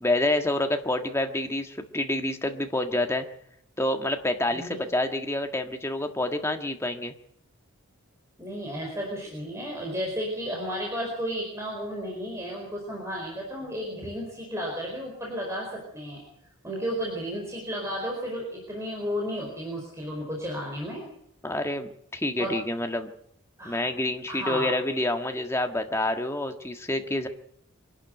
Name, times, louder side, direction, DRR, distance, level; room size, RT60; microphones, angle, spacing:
voice 1, 0.0-3.2 3.8-7.1 21.4-23.1 23.6-27.3, left 1 dB, 10° left, 5 dB, 1.6 m, -28 dB
voice 2, 8.4-16.2 16.6-21.0 22.4-22.5 23.6-23.9 24.3-24.7, equal, 15° right, -1 dB, 4.7 m, -33 dB
24.5 x 11.5 x 9.3 m, 0.69 s
head